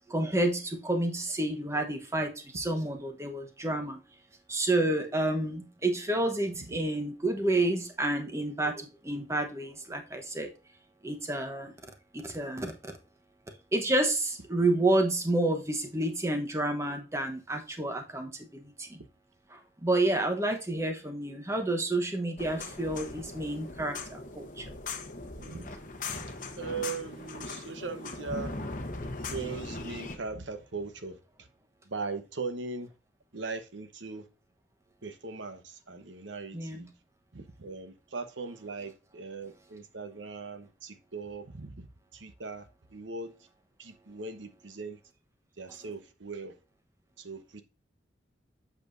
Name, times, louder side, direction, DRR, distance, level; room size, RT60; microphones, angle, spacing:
voice 1, 0.1-4.0 4.5-10.5 11.0-11.7 12.1-12.9 13.5-19.0 19.5-24.7 36.5-36.9, right 2 dB, 15° right, 1.0 m, -30 dB
sound 1, 22.4-30.2, left 3 dB, 45° left, 1.0 m, -39 dB
voice 2, 25.4-25.7 26.6-28.6 29.3-31.5 31.8-32.9 33.3-34.3 35.0-36.9 37.3-41.9 42.1-43.4 43.8-45.0 45.6-46.6 47.2-47.6, right 4 dB, 90° right, 1.0 m, -39 dB
8.1 x 6.9 x 2.6 m
head